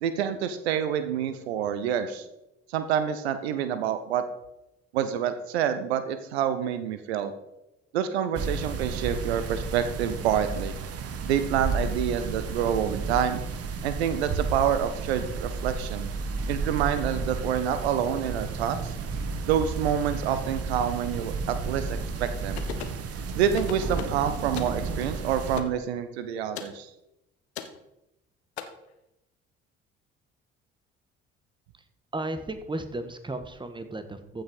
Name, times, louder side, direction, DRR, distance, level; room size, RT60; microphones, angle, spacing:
voice 1, 0.0-2.2 2.7-4.3 4.9-7.3 7.9-10.7 11.3-13.4 13.8-16.1 16.5-18.9 19.5-22.6 23.3-26.9, right 9 dB, 75° right, 11 dB, 0.9 m, -27 dB
distant rain and thunder, 8.3-25.6, right 4 dB, 45° right, 1.5 m, -32 dB
sound 1, 22.6-23.0 23.6-24.2 24.6-24.8 25.6-25.8 26.6-26.8 27.6-27.8 28.6-28.7, left 10 dB, 80° left, 1.0 m, -36 dB
voice 2, 32.1-34.4, right 2 dB, 15° right, 9 dB, 1.5 m, -34 dB
14.5 x 5.8 x 5.2 m, 0.89 s
figure-of-eight pair, 55°, 32 cm